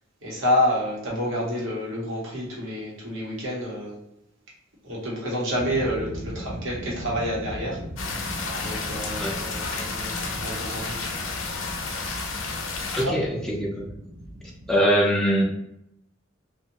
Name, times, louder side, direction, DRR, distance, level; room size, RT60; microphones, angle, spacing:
voice 1, 0.2-4.0 4.8-7.8 8.0-8.3 8.6-11.2 13.0-13.2, equal, 80° right, -5 dB, 1.0 m, -28 dB
sound 1, 5.5-14.8, equal, 65° right, 0.6 m, -39 dB
sound 2, 8.0-13.0, left 4 dB, 85° left, 0.5 m, -31 dB
voice 2, 12.9-13.9 14.7-15.4, equal, ahead, -3 dB, 0.4 m, -22 dB
2.6 x 2.3 x 2.8 m, 0.83 s
head